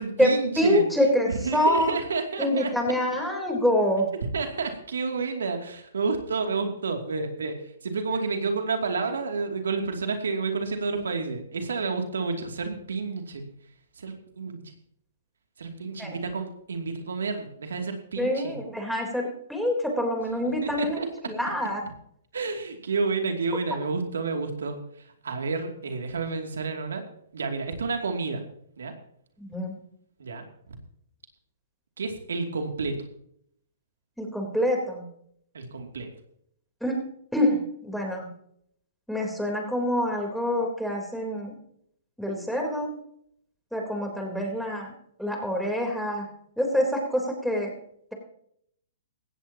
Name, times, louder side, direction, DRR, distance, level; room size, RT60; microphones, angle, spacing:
voice 1, 0.0-0.8 1.3-2.7 4.2-13.4 14.0-14.6 15.6-18.6 20.4-21.1 22.3-24.8 25.2-27.0 27.3-28.4 28.8-28.9 30.2-30.4 32.0-33.0 35.5-36.1, right 4 dB, 85° right, 4 dB, 2.7 m, -30 dB
voice 2, 0.6-1.9 2.4-4.1 16.0-16.2 18.2-21.9 29.4-29.7 34.2-35.0 36.8-37.0 37.3-38.3 39.1-41.6 42.2-42.9 43.7-44.9 45.2-46.3 46.6-47.7, left 1 dB, ahead, 0 dB, 3.7 m, -26 dB
17.5 x 14.5 x 2.9 m, 0.69 s
hypercardioid pair, 140°, 0 cm